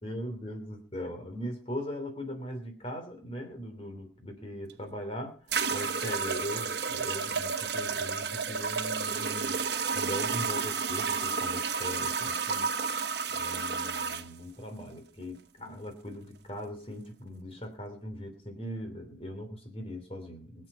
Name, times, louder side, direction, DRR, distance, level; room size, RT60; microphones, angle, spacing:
voice 1, 0.0-9.6 9.9-12.7 13.3-20.7, equal, 30° left, 5 dB, 3.1 m, -40 dB
sound 1, 4.7-4.8 5.5-14.3, right 5 dB, 65° right, 1.2 m, -31 dB
22.5 x 8.4 x 5.5 m, 0.39 s
head